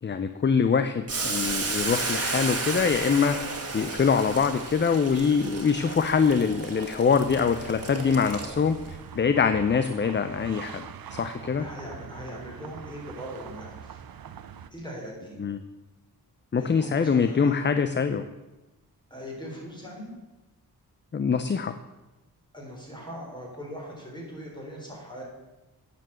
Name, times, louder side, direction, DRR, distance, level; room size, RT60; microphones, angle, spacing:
voice 1, 0.0-10.8 11.1-11.7 15.4-15.6 16.5-18.2 21.1-21.8, left 6 dB, 30° left, 10 dB, 0.5 m, -24 dB
Boiling, 1.1-8.9, right 3 dB, 40° right, 2.0 m, -33 dB
sound 1, 7.2-14.7, right 8 dB, 65° right, 0.7 m, -43 dB
voice 2, 11.6-14.0 14.7-15.4 16.6-17.6 19.1-20.1 22.5-25.2, equal, 10° left, -2 dB, 4.0 m, -40 dB
9.2 x 7.0 x 7.6 m, 1.1 s
wide cardioid pair, 100°, 38 cm